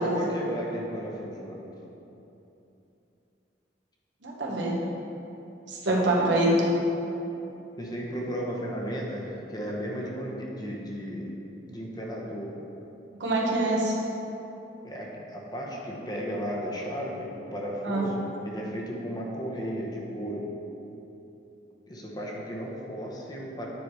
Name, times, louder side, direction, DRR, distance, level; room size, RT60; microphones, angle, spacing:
voice 1, 0.0-1.7 6.2-6.4 7.8-11.4 11.7-12.6 14.8-20.5 21.9-23.7, equal, 20° left, -2 dB, 0.9 m, -34 dB
voice 2, 4.2-4.8 5.7-6.5 13.2-14.0 17.8-18.0, right 2 dB, 80° right, -3 dB, 1.4 m, -25 dB
9.3 x 4.8 x 4.8 m, 3.0 s
head